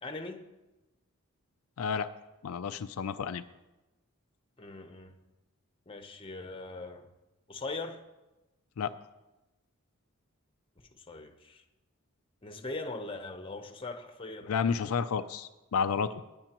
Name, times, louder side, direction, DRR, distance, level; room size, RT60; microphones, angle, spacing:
voice 1, 0.0-0.5 4.6-5.2 5.9-7.1 7.5-8.0 11.0-11.6 12.4-14.5, left 3 dB, 25° left, 6 dB, 0.8 m, -40 dB
voice 2, 1.8-2.1 2.4-3.4 8.8-8.9 14.5-16.3, left 6 dB, 80° left, 9 dB, 0.4 m, -31 dB
19.5 x 8.6 x 3.0 m, 1.0 s
head